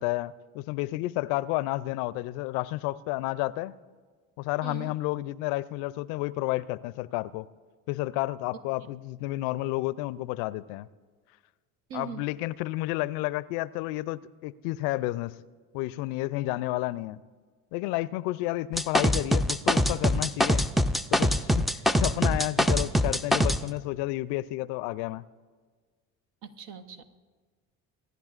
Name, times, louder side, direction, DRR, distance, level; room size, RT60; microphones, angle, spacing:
voice 1, 0.0-3.8 4.4-7.5 7.9-10.9 11.9-15.3 15.7-17.2 17.7-20.7 21.1-25.2, left 18 dB, 75° left, 19 dB, 0.5 m, -31 dB
voice 2, 4.6-4.9 11.9-12.3 22.3-22.4 26.4-27.0, right 8 dB, 70° right, 9 dB, 1.0 m, -41 dB
sound 1, 18.7-23.6, equal, ahead, 0.3 m, -23 dB
24.5 x 10.0 x 2.4 m, 1.5 s
hypercardioid pair, 65°, 39 cm